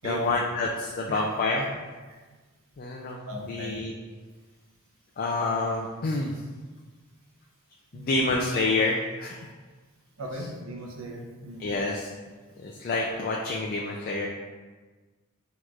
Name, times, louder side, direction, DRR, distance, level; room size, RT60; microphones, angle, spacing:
voice 1, 0.0-1.7 2.8-3.2 3.5-3.9 5.2-6.4 7.9-9.5 11.6-12.1 12.6-14.3, left 2 dB, 40° left, -1 dB, 0.3 m, -28 dB
voice 2, 3.3-3.8 7.9-8.3 10.2-11.7, right 1 dB, 65° right, 0 dB, 0.7 m, -38 dB
6.2 x 3.0 x 2.4 m, 1.3 s
head